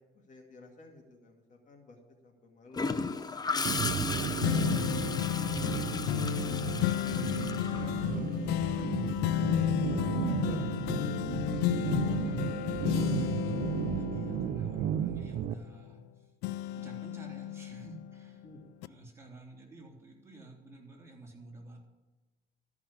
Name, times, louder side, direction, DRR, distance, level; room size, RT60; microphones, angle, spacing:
voice 1, 0.0-2.0 2.2-3.2 3.5-4.9 5.7-6.2 6.8-8.9 9.2-11.0 18.4-19.0, left 3 dB, 45° left, 3 dB, 2.1 m, -52 dB
Gurgling / Toilet flush, 2.7-8.5 10.5-10.7, left 4 dB, 25° left, 0.7 m, -35 dB
sound 1, 3.6-15.5, right 10 dB, 60° right, 0.5 m, -34 dB
sound 2, 4.4-16.1 16.4-18.3 18.8-18.9, left 14 dB, 85° left, 0.4 m, -32 dB
voice 2, 5.2-5.8 12.0-16.3 16.6-18.4 18.9-21.8, right 2 dB, 15° right, -1 dB, 3.3 m, -51 dB
13.5 x 6.0 x 8.6 m, 1.2 s
cardioid pair, 110°, 17 cm